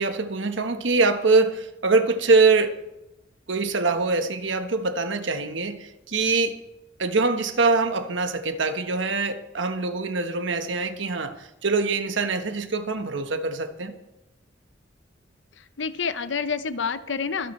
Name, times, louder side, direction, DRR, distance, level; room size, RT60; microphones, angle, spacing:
voice 1, 0.0-2.8 3.5-6.6 7.0-13.9, right 3 dB, 75° right, 8 dB, 1.3 m, -23 dB
voice 2, 15.6-17.5, left 5 dB, 75° left, 12 dB, 0.8 m, -28 dB
24.0 x 10.5 x 3.3 m, 0.94 s
head